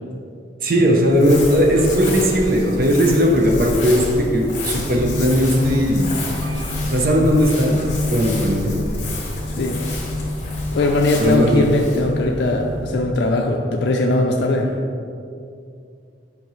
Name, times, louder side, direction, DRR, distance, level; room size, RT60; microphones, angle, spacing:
voice 1, 0.6-6.1 6.8-7.8 8.1-8.8 11.2-11.7, equal, 50° right, 0 dB, 0.7 m, -17 dB
sound 1, 0.8-10.6, right 3 dB, 85° right, 0.4 m, -37 dB
Crumpling crinkling, 1.0-13.5, left 1 dB, 40° left, 1.2 m, -30 dB
sound 2, 4.8-13.1, left 2 dB, 10° left, 0.5 m, -30 dB
voice 2, 10.7-14.7, left 2 dB, 65° left, 1 dB, 0.4 m, -19 dB
7.1 x 5.2 x 3.1 m, 2.5 s
head